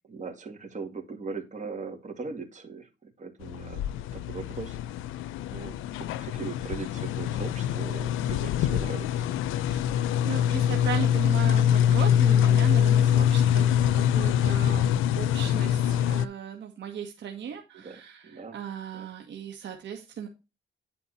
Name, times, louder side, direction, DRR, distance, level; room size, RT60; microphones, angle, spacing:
voice 1, 0.0-3.8 4.1-4.8 5.5-5.8 6.2-9.4 17.5-18.6 18.9-19.1, right 4 dB, 40° right, 3 dB, 2.3 m, -39 dB
sound 1, 3.4-16.3, left 10 dB, 85° left, 0.5 m, -24 dB
voice 2, 9.5-20.3, right 8 dB, 65° right, 3 dB, 1.6 m, -37 dB
10.0 x 4.5 x 4.1 m, 0.27 s
cardioid pair, 90°, 20 cm